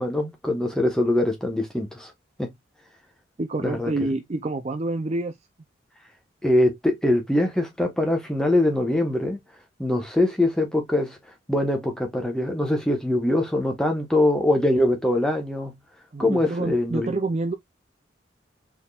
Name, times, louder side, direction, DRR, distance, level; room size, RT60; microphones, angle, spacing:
voice 1, 0.0-2.1 2.4-2.5 3.6-3.9 6.4-9.4 9.8-11.2 11.5-15.7 16.2-17.1, left 1 dB, 5° left, 1.1 m, -23 dB
voice 2, 3.4-5.3 16.1-17.5, right 2 dB, 35° right, 0.4 m, -27 dB
4.3 x 3.5 x 2.3 m
head